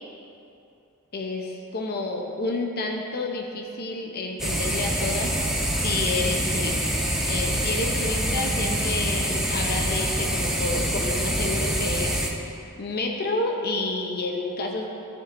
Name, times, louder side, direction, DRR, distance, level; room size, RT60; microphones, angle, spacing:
voice 1, 1.1-5.4 5.7-6.9 7.2-12.2 12.8-14.9, left 2 dB, 45° left, 1 dB, 0.7 m, -29 dB
sound 1, 4.4-12.3, right 1 dB, ahead, 0.6 m, -26 dB
sound 2, 8.2-13.0, right 1 dB, 50° right, 1.0 m, -43 dB
13.0 x 7.3 x 2.6 m, 2.8 s
head